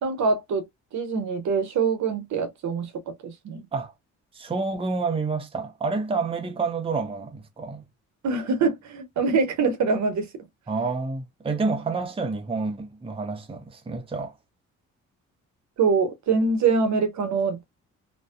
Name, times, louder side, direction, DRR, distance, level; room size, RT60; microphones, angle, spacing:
voice 1, 0.0-0.7 0.9-3.6 8.2-10.3 15.8-17.6, right 4 dB, 70° right, 0.9 m, -24 dB
voice 2, 4.3-7.8 10.7-14.3, right 4 dB, 20° right, 0.7 m, -28 dB
2.6 x 2.2 x 2.4 m
cardioid pair, 90°, 30 cm